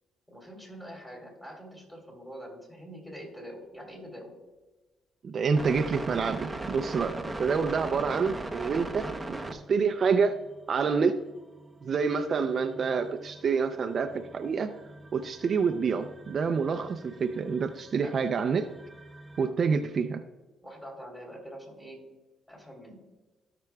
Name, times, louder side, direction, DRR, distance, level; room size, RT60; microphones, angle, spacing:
voice 1, 0.3-4.3 18.0-18.2 20.6-22.1 22.5-23.0, equal, 10° left, 0 dB, 3.1 m, -45 dB
voice 2, 5.2-10.4 10.7-11.2 11.8-14.7 15.1-18.7 19.4-20.2, right 5 dB, 50° right, 6 dB, 0.5 m, -27 dB
sound 1, 5.6-9.7 10.2-19.5, right 2 dB, 10° right, 0.9 m, -41 dB
16.0 x 5.9 x 2.3 m, 1.2 s
cardioid pair, 90°, 0 cm